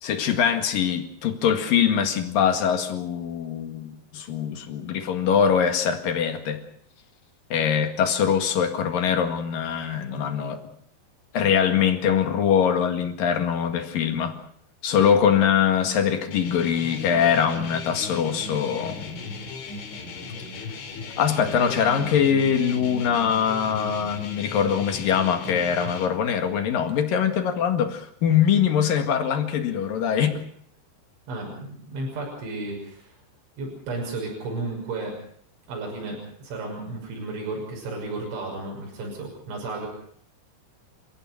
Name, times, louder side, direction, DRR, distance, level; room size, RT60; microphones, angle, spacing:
voice 1, 0.0-6.6 7.5-10.6 11.3-14.4 14.8-19.2 21.2-30.5, left 8 dB, 55° left, 3.2 m, -23 dB
sound 1, 16.3-26.1, left 3 dB, 80° left, 5.5 m, -37 dB
voice 2, 31.3-33.1 33.6-35.2 35.7-39.9, right 2 dB, 80° right, 8.6 m, -33 dB
30.0 x 16.0 x 6.0 m
omnidirectional pair, 5.3 m